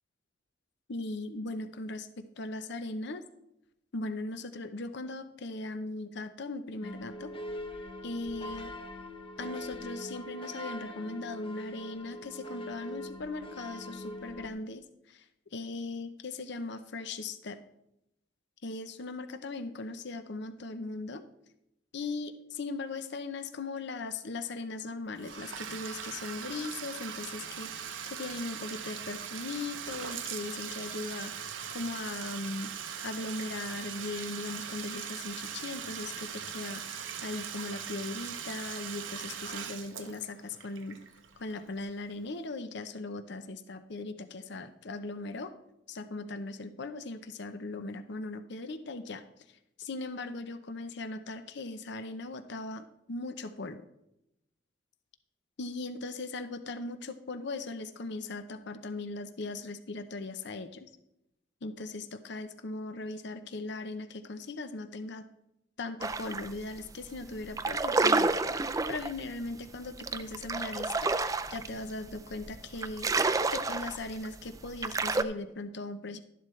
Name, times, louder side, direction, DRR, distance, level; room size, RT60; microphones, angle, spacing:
voice 1, 0.9-3.2 3.9-7.3 8.0-8.7 9.4-15.3 15.5-17.6 18.6-21.2 21.9-41.0 41.4-45.5 45.9-49.2 49.8-53.8 55.6-60.9 61.6-65.2 65.8-73.1 73.5-76.2, left 3 dB, 65° left, 10 dB, 0.7 m, -39 dB
sound 1, 6.8-14.5, left 1 dB, 30° left, 0.9 m, -42 dB
Bathtub (filling or washing), 25.2-41.9, right 8 dB, 85° right, 0.9 m, -40 dB
sound 2, 66.0-66.5 66.9-67.1 67.4-75.2, right 3 dB, 20° right, 0.4 m, -29 dB
12.0 x 11.0 x 3.2 m, 0.85 s
head